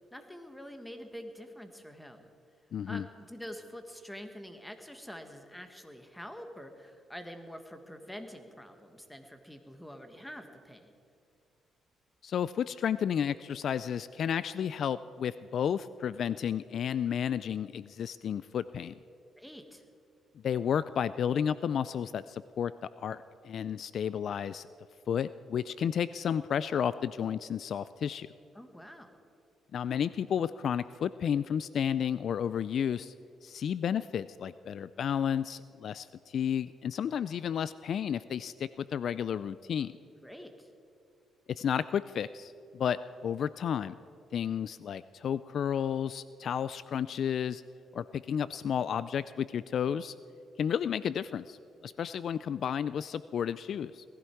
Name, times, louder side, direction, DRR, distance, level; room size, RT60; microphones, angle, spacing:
voice 1, 0.1-2.3 2.9-10.9 19.4-19.8 28.5-29.2 40.2-40.7, equal, 5° left, 6 dB, 1.7 m, -46 dB
voice 2, 2.7-3.0 12.2-18.9 20.4-22.7 23.0-24.7 25.1-28.3 29.7-33.1 33.4-39.9 41.6-44.0 44.3-47.6 47.9-50.1 50.6-51.6 51.8-54.0, left 8 dB, 60° left, 16 dB, 0.3 m, -32 dB
19.0 x 15.0 x 4.6 m, 2.5 s
cardioid pair, 90°, 0 cm